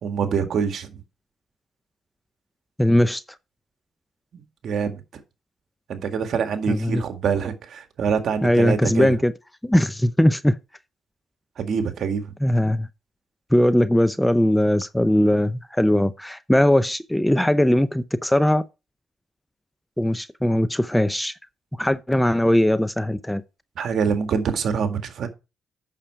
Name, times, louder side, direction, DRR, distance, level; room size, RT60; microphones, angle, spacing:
voice 1, 0.0-1.0 4.3-5.0 5.9-9.1 11.6-12.3 23.8-25.3, right 6 dB, 60° right, 1.8 m, -25 dB
voice 2, 2.8-3.2 6.7-7.0 8.4-9.3 9.6-10.6 12.4-12.9 13.5-18.6 20.0-21.3 21.8-23.4, left 1 dB, 5° left, 0.6 m, -20 dB
8.9 x 6.6 x 4.6 m
cardioid pair, 90°, 0 cm